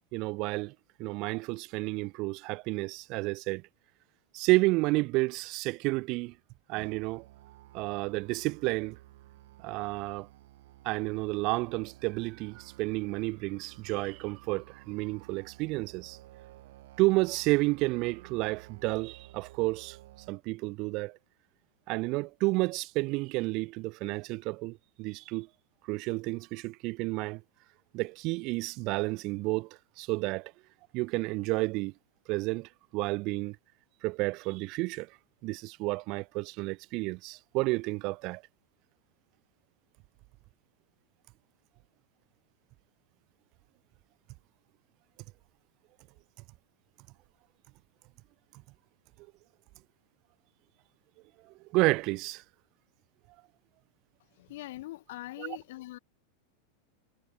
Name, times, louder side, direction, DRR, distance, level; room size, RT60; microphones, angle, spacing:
voice 1, 0.1-3.6 4.3-6.3 6.7-7.3 7.7-9.0 9.6-10.3 10.8-16.2 17.0-20.0 20.3-21.2 21.9-25.5 25.9-27.4 27.9-29.7 30.0-30.5 30.9-31.9 32.3-33.6 34.0-35.1 35.4-38.4 51.7-52.4 55.4-55.6, right 23 dB, 50° right, 0.8 m, -31 dB
Musical instrument, 6.7-20.3, right 17 dB, 65° right, 5.2 m, -53 dB
voice 2, 54.4-56.0, left 17 dB, 65° left, 2.3 m, -42 dB
hypercardioid pair, 100°, 0 cm